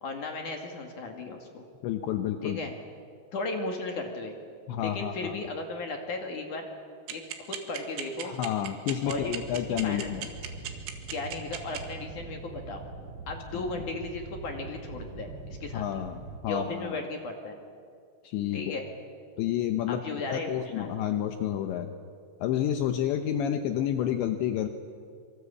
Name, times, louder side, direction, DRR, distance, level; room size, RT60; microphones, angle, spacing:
voice 1, 0.0-1.7 2.4-2.7 3.3-4.3 4.8-6.7 7.1-7.2 7.5-8.4 9.0-9.3 9.8-10.1 11.1-12.8 13.3-15.3 15.6-16.0 16.4-17.6 18.5-18.9 19.9-20.9, left 3 dB, 50° left, 3 dB, 2.8 m, -35 dB
voice 2, 1.8-2.6 4.7-5.4 8.2-10.3 13.5-13.8 15.7-17.0 18.2-18.7 19.4-22.0 22.4-24.7, left 10 dB, 75° left, 7 dB, 2.9 m, -30 dB
sound 1, 7.1-11.8, right 11 dB, 80° right, 4.3 m, -35 dB
sound 2, 9.0-16.4, right 3 dB, 45° right, 2.0 m, -43 dB
27.0 x 24.0 x 8.4 m, 2.2 s
omnidirectional pair, 5.8 m